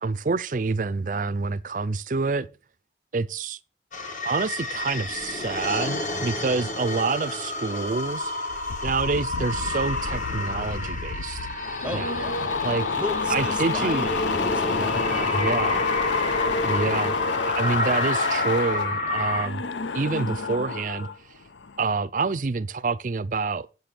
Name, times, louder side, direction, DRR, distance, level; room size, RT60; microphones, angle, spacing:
voice 1, 0.0-2.5 3.1-3.6 4.2-8.3 8.8-11.4 11.9-12.1 12.6-12.9 13.3-14.1 15.3-15.8 16.6-17.1 17.5-19.6 19.9-21.1 21.8-23.7, right 4 dB, 45° right, 0.4 m, -27 dB
sound 1, 3.9-19.5, left 2 dB, 45° left, 1.5 m, -30 dB
sound 2, 8.5-21.2 21.5-21.9, left 4 dB, 90° left, 0.7 m, -29 dB
voice 2, 11.8-12.4 13.0-15.9, left 1 dB, 5° right, 0.8 m, -36 dB
7.9 x 6.8 x 5.9 m
head